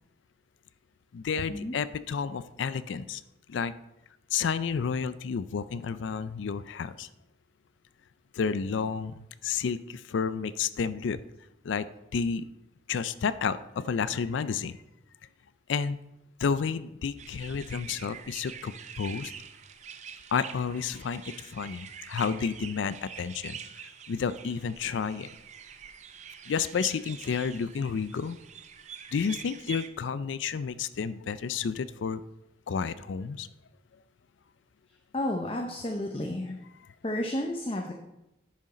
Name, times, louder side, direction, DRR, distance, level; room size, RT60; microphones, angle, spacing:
voice 1, 1.1-3.2 3.5-3.7 4.3-7.1 8.3-11.2 11.6-11.9 12.1-12.4 12.9-14.8 15.7-16.0 16.4-19.3 20.3-25.3 26.5-28.4 29.1-32.2 32.7-33.5, left 6 dB, 80° left, 15 dB, 0.4 m, -31 dB
sound 1, 17.2-29.9, right 7 dB, 40° right, 0.5 m, -45 dB
voice 2, 35.1-36.6 37.0-37.9, left 1 dB, 30° left, 2 dB, 0.7 m, -31 dB
10.5 x 6.3 x 4.2 m, 0.91 s
head